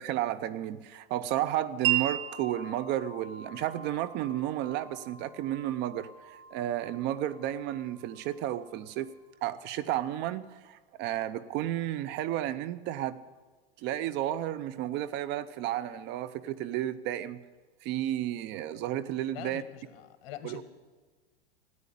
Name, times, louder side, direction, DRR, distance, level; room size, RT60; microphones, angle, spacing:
voice 1, 0.0-9.1 9.4-13.2 13.8-17.4 17.8-19.6 20.4-20.6, right 12 dB, 40° right, 0.6 m, -32 dB
Wind chime, 1.8-9.5, right 12 dB, 65° right, 1.6 m, -37 dB
voice 2, 19.3-20.6, left 12 dB, 55° left, 1.9 m, -44 dB
14.0 x 9.5 x 9.9 m
hypercardioid pair, 125°, 29 cm